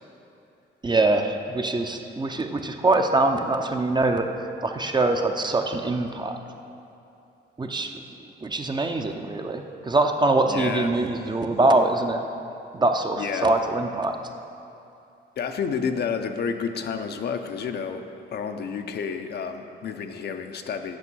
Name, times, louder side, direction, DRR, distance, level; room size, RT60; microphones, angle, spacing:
voice 1, 0.8-4.3 4.6-6.4 7.6-8.0 8.4-12.2 12.7-14.2, right 2 dB, 20° right, 5 dB, 0.6 m, -23 dB
voice 2, 10.5-10.9 13.2-13.5 15.4-18.1 18.3-21.0, left 6 dB, 55° left, 6 dB, 0.6 m, -30 dB
8.4 x 5.1 x 6.2 m, 2.7 s
cardioid pair, 90°, 20 cm